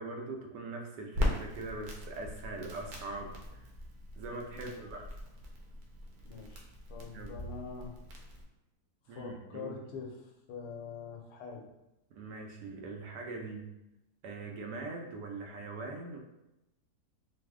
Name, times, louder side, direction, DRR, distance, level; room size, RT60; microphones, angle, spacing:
voice 1, 0.0-3.6 4.2-5.1 7.1-7.4 9.1-9.8 12.1-13.7 14.2-16.2, right 3 dB, 90° right, 2 dB, 1.2 m, -42 dB
Crackle, 1.1-8.4, left 1 dB, 75° right, 1.1 m, -39 dB
voice 2, 6.2-6.6 6.9-8.0 9.1-11.7, left 5 dB, 85° left, 0 dB, 1.2 m, -44 dB
3.3 x 2.0 x 3.5 m, 0.91 s
omnidirectional pair, 1.7 m